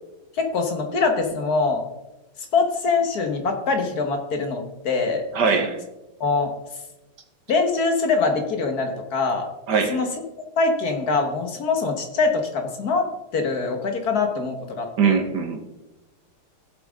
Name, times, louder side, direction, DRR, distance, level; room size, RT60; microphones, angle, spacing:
voice 1, 0.3-1.8 2.5-5.2 6.2-6.5 7.5-9.5 9.9-10.1 10.6-15.2, left 4 dB, 50° left, 4 dB, 1.8 m, -23 dB
voice 2, 5.3-5.8 9.7-10.0 15.0-15.7, right 5 dB, 55° right, 5 dB, 1.7 m, -21 dB
15.5 x 7.8 x 3.7 m, 1.0 s
omnidirectional pair, 2.3 m